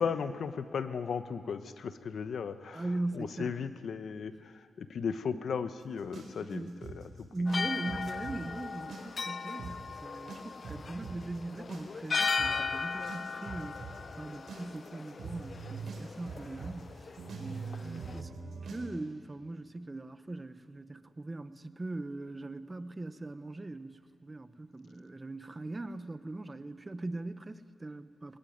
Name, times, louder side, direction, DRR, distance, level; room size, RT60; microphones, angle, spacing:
voice 1, 0.0-2.8 3.1-7.3, left 6 dB, 75° left, 11 dB, 1.0 m, -36 dB
voice 2, 2.7-3.6 6.4-6.9 7.3-18.3 18.6-28.4, right 2 dB, 25° right, 12 dB, 0.9 m, -40 dB
sound 1, 6.1-8.4 8.7-9.3 9.6-9.7 10.3-18.9, right 5 dB, 75° right, 4.3 m, -43 dB
sound 2, 7.5-18.2, left 5 dB, 45° left, 0.5 m, -37 dB
21.0 x 19.0 x 9.4 m, 2.3 s
wide cardioid pair, 110°, 0 cm